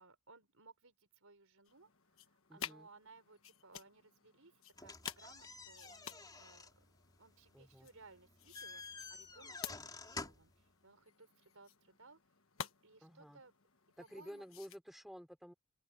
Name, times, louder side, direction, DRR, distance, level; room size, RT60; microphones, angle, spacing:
voice 1, 0.0-1.9 2.2-6.8 7.2-12.2 12.8-13.5 14.0-14.4, right 3 dB, 70° right, 4.6 m, -62 dB
sound 1, 1.7-14.8, left 8 dB, 65° left, 1.4 m, -52 dB
voice 2, 2.5-2.9 7.5-7.9 13.0-13.4 14.0-15.5, equal, ahead, 5.4 m, -52 dB
sound 2, 4.7-10.6, left 3 dB, 15° left, 3.8 m, -50 dB
open air
head